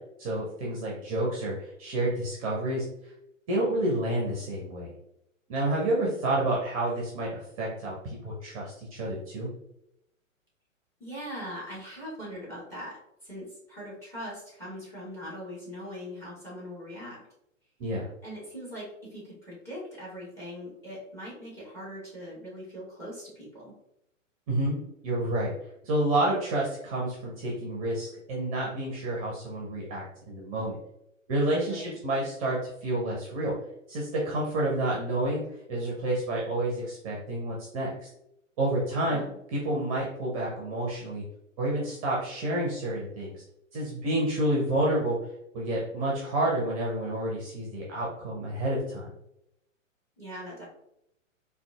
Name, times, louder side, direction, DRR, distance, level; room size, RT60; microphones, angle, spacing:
voice 1, 0.2-2.8 3.5-4.9 5.5-9.5 17.8-18.1 24.5-24.8 25.0-25.5 25.8-30.8 31.3-33.5 33.9-35.4 35.7-38.1 38.6-39.2 39.5-41.2 41.6-43.4 43.7-45.2 45.5-49.1, right 1 dB, 30° right, -3 dB, 0.7 m, -29 dB
voice 2, 11.0-17.2 18.2-23.7 31.7-32.0 39.0-39.3 50.2-50.6, equal, 5° left, -5 dB, 1.0 m, -41 dB
3.8 x 2.5 x 2.3 m, 0.81 s
figure-of-eight pair, 110°, 39 cm